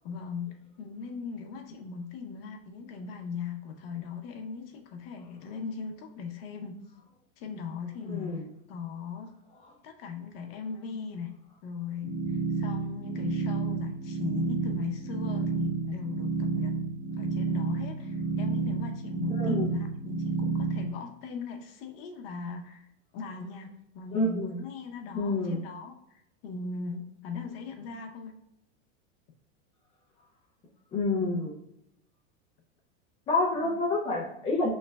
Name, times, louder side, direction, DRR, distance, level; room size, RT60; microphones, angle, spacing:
voice 1, 0.0-6.8 7.4-8.3 8.7-9.3 9.8-11.3 11.6-12.2 12.6-16.7 17.2-22.8 23.1-23.7 23.9-28.3 33.6-33.8, left 5 dB, 50° left, 4 dB, 0.7 m, -39 dB
voice 2, 8.0-8.4 9.6-9.7 19.4-19.7 24.1-24.5 25.1-25.6 30.9-31.5 33.3-34.7, left 2 dB, 15° left, -3 dB, 0.4 m, -28 dB
sound 1, 12.0-20.8, right 4 dB, 15° right, 0.8 m, -30 dB
6.2 x 3.2 x 2.2 m, 0.82 s
supercardioid pair, 165°, 37 cm